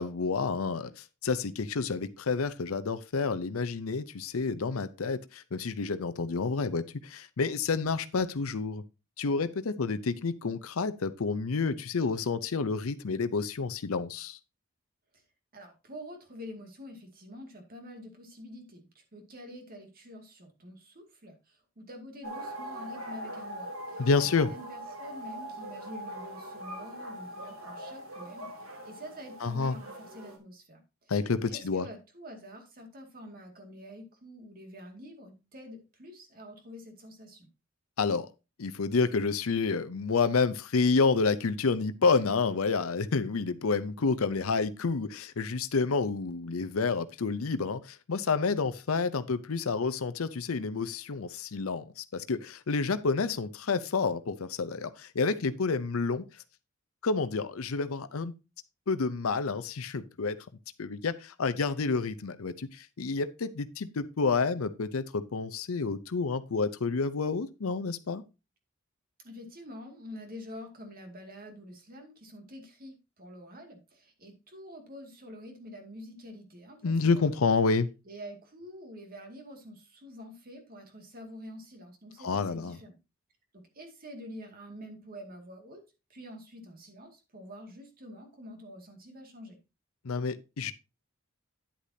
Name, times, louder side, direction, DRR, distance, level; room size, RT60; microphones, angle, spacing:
voice 1, 0.0-8.8 9.2-14.4 24.0-24.5 29.4-29.8 31.1-31.9 38.0-38.3 38.6-56.2 57.0-58.3 58.9-60.4 60.8-68.2 76.8-77.9 82.2-82.8 90.0-90.7, left 4 dB, 85° left, 0.6 m, -29 dB
voice 2, 15.5-24.1 24.4-31.1 31.5-37.5 69.2-77.4 78.1-83.0 83.5-85.8 86.1-89.6, equal, 45° right, 2.2 m, -47 dB
sound 1, 22.2-30.4, equal, 75° right, 2.3 m, -42 dB
10.0 x 8.3 x 2.8 m
head